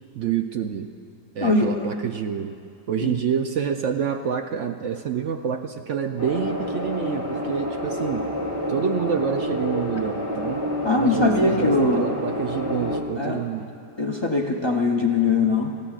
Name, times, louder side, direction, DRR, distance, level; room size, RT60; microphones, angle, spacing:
voice 1, 0.1-0.9 1.3-2.6 2.9-8.3 8.7-10.6 11.0-13.7, right 7 dB, 75° right, 5 dB, 0.7 m, -27 dB
voice 2, 1.4-1.9 3.0-3.1 10.8-12.1 13.2-13.4 14.0-15.7, left 3 dB, 45° left, 0 dB, 0.3 m, -21 dB
sound 1, 6.2-13.0, equal, 15° right, 1.9 m, -28 dB
28.0 x 15.0 x 2.4 m, 2.5 s
omnidirectional pair, 1.8 m